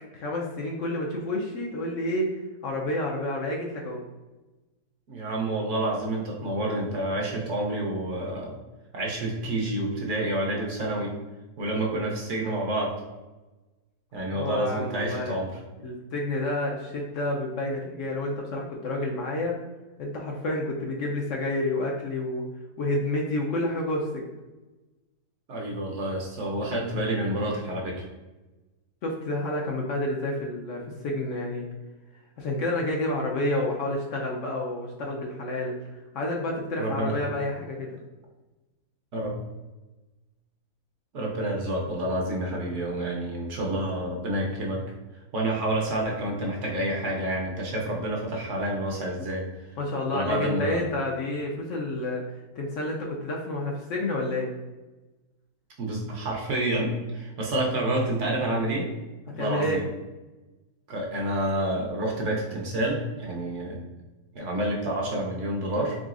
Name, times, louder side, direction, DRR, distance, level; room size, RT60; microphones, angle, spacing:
voice 1, 0.1-2.4 2.6-4.0 14.3-15.3 15.8-19.6 20.0-22.4 22.8-24.3 29.0-31.7 32.4-35.7 36.1-38.0 49.8-54.5 59.3-59.8, left 1 dB, 70° left, -1 dB, 0.8 m, -29 dB
voice 2, 5.1-8.5 8.9-11.1 11.6-12.9 14.1-15.5 25.5-28.0 36.8-37.2 39.1-39.4 41.1-44.8 45.3-49.5 50.1-50.8 55.8-58.9 59.3-59.9 60.9-63.8 64.3-66.0, right 1 dB, 60° right, -1 dB, 0.9 m, -28 dB
3.9 x 3.4 x 2.4 m, 1.1 s
omnidirectional pair, 1.6 m